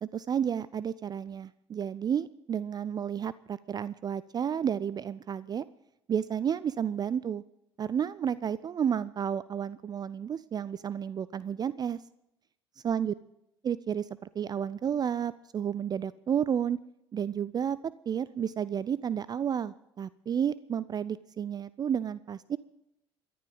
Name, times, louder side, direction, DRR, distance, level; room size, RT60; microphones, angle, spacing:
voice 1, 0.0-5.7 6.1-7.4 7.8-12.0 12.8-13.1 13.6-16.8 17.1-17.8 18.1-22.6, right 8 dB, 30° right, 18 dB, 0.4 m, -31 dB
28.0 x 11.0 x 3.9 m, 0.83 s
figure-of-eight pair, 55°, 13 cm